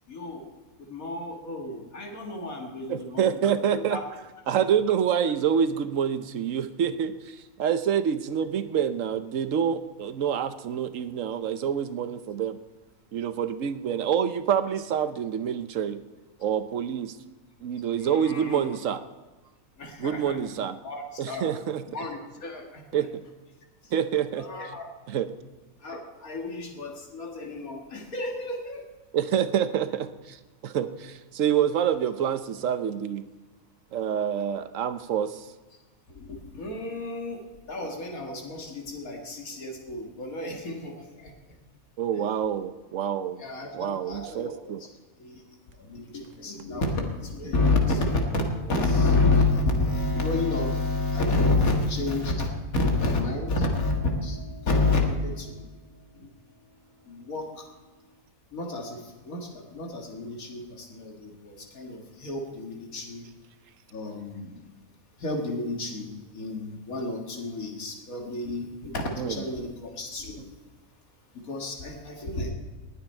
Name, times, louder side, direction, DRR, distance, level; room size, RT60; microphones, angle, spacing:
voice 1, 0.1-0.4 0.9-3.5 3.9-4.0 18.0-18.7 19.8-20.5 20.8-21.5 21.9-22.7 22.9-23.1 24.4-24.9 25.8-28.8 36.2-37.4 37.7-41.3 43.4-44.5 45.2-45.4 45.9-48.2 48.5-52.5 52.7-53.9 54.2-54.4 54.7-55.6 57.1-57.5 58.5-59.0 59.3-63.2 63.9-64.5 65.2-70.5 71.5-72.5, left 3 dB, 85° left, 2 dB, 2.4 m, -29 dB
voice 2, 2.9-4.0 4.5-12.6 13.1-16.0 16.4-17.2 17.6-19.0 20.0-20.8 21.2-21.8 22.9-23.1 23.9-24.5 25.1-25.3 29.1-33.3 33.9-35.5 42.0-43.4 43.7-44.8 69.2-69.4, right 8 dB, 70° right, 11 dB, 1.1 m, -27 dB
sound 1, 53.4-58.2, equal, 40° left, 3.8 m, -52 dB
20.0 x 8.8 x 4.4 m, 1.2 s
omnidirectional pair, 1.4 m